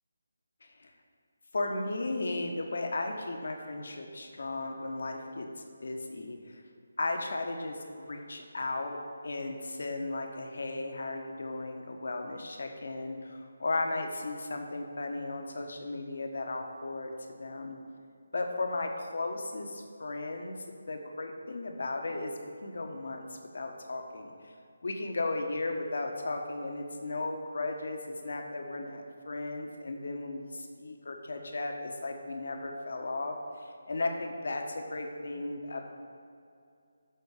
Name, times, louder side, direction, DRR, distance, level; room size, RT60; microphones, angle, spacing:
voice 1, 1.5-5.5 5.8-6.4 7.0-9.0 9.2-17.1 17.4-17.8 18.3-20.5 20.9-22.3 22.6-23.2 23.5-24.5 24.8-33.3 33.6-35.9, left 2 dB, 60° left, 3 dB, 1.3 m, -35 dB
12.5 x 4.5 x 6.5 m, 2.5 s
figure-of-eight pair, 150°, 0 cm